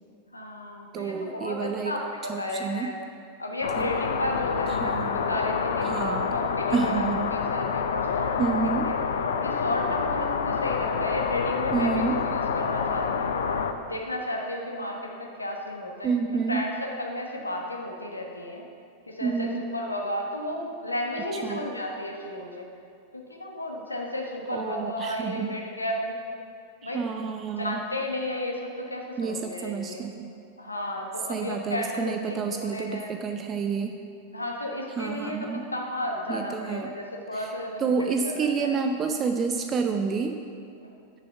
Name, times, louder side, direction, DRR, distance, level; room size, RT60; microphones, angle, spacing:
voice 1, 0.3-3.0 3.4-9.0 9.4-13.4 13.8-16.1 16.5-18.6 19.1-22.7 23.1-26.1 26.8-27.0 27.6-30.0 30.6-33.1 34.3-38.7 40.8-40.9, left 1 dB, 80° left, 0 dB, 1.2 m, -33 dB
voice 2, 0.9-2.0 2.3-2.9 3.8-3.9 4.7-5.2 5.8-6.3 6.7-7.4 8.4-8.9 11.7-12.3 16.0-16.6 19.2-19.6 21.4-21.6 24.5-25.5 26.8-27.8 29.2-30.3 31.3-34.0 35.0-35.6 36.3-36.9 37.3-37.5 37.8-40.3, right 5 dB, 25° right, 6 dB, 0.5 m, -29 dB
sound 1, 3.6-13.7, left 6 dB, 60° left, 0.5 m, -27 dB
9.7 x 6.7 x 5.7 m, 2.4 s
figure-of-eight pair, 90°, 0 cm